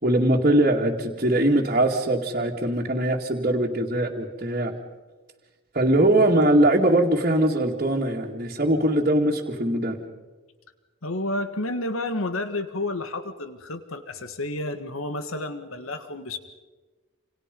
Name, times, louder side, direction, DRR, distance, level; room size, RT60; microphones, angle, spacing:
voice 1, 0.0-4.7 5.7-10.0, right 1 dB, 40° right, -5 dB, 2.3 m, -21 dB
voice 2, 11.0-16.4, left 2 dB, 85° left, 9 dB, 1.8 m, -30 dB
29.0 x 28.0 x 5.4 m, 1.3 s
head